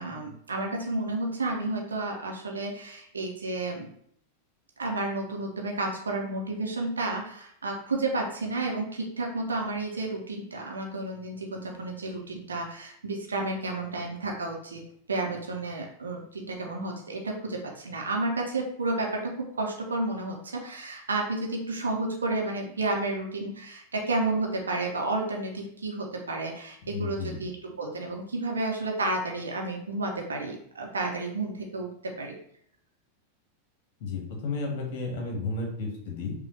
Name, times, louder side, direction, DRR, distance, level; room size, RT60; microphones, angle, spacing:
voice 1, 0.0-3.9 4.8-14.8 15.1-32.3, right 2 dB, 75° right, 1 dB, 0.7 m, -31 dB
voice 2, 26.8-27.4 34.0-36.3, left 3 dB, 50° left, 0 dB, 1.3 m, -33 dB
5.3 x 2.4 x 3.2 m, 0.66 s
figure-of-eight pair, 90°, 0 cm